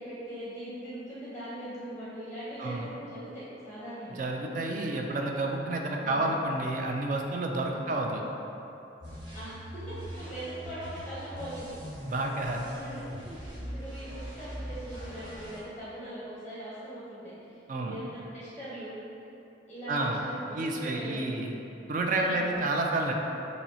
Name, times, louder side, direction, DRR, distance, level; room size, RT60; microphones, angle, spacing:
voice 1, 0.0-4.2 6.0-6.4 7.8-8.0 9.3-9.6 9.9-11.8 12.7-13.0 13.5-19.0 19.7-21.5 22.2-22.7, right 1 dB, 5° left, -11 dB, 0.7 m, -41 dB
voice 2, 4.2-8.2 12.1-12.6 17.7-18.0 19.9-20.2 20.5-21.5 21.9-23.1, right 2 dB, 45° right, 1 dB, 0.3 m, -30 dB
sound 1, 9.0-15.6, equal, 80° right, 1.1 m, -41 dB
5.6 x 2.0 x 2.7 m, 2.9 s
head